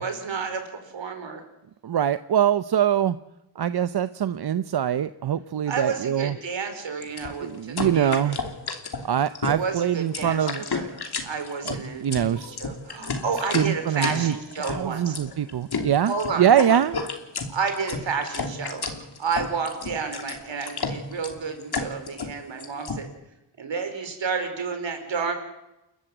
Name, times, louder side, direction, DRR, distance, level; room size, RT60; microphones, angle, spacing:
voice 1, 0.0-1.4 5.7-8.4 9.4-15.2 16.0-16.8 17.5-18.8 19.2-23.1 23.6-25.3, right 5 dB, 75° right, 7 dB, 4.8 m, -31 dB
voice 2, 1.8-3.2 3.6-6.3 7.4-8.4 9.0-10.6 11.7-12.5 13.5-14.3 14.6-16.9, right 9 dB, 55° right, 13 dB, 0.7 m, -23 dB
sound 1, 7.0-23.0, left 4 dB, 55° left, 3.0 m, -32 dB
29.5 x 13.5 x 8.0 m, 0.93 s
wide cardioid pair, 110°, 46 cm